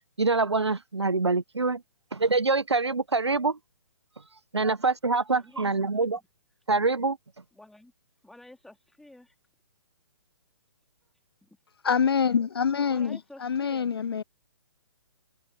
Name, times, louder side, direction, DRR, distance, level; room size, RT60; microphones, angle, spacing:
voice 1, 0.2-1.8 2.1-3.6 4.5-6.2 6.7-7.2, right 3 dB, 75° right, 1.1 m, -25 dB
voice 2, 5.4-5.8 7.5-7.9 8.2-9.3 11.4-11.6 12.9-14.1, left 1 dB, ahead, 2.7 m, -51 dB
voice 3, 11.8-14.2, left 7 dB, 60° left, 0.4 m, -25 dB
figure-of-eight pair, 130°, 14 cm